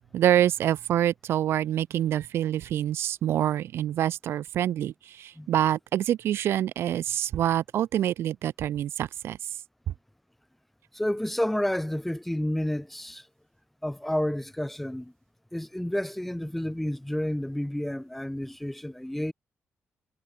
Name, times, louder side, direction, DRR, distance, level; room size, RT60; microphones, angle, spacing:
voice 1, 0.0-9.4, right 11 dB, 75° right, 0.6 m, -26 dB
voice 2, 10.9-13.3 13.8-15.1 15.5-19.3, left 1 dB, 5° left, 0.6 m, -30 dB
wide cardioid pair, 175°, 4 cm